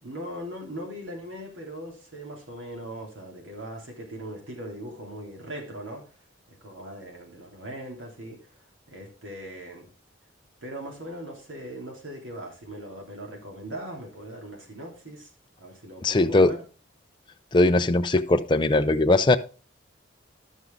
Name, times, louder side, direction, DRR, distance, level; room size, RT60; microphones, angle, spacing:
voice 1, 0.0-6.0 6.5-8.4 8.9-9.9 10.6-15.3 15.6-16.6, right 1 dB, 85° right, 2.9 m, -39 dB
voice 2, 16.0-16.5 17.5-19.4, left 2 dB, 25° left, 0.5 m, -20 dB
11.5 x 6.3 x 3.7 m
head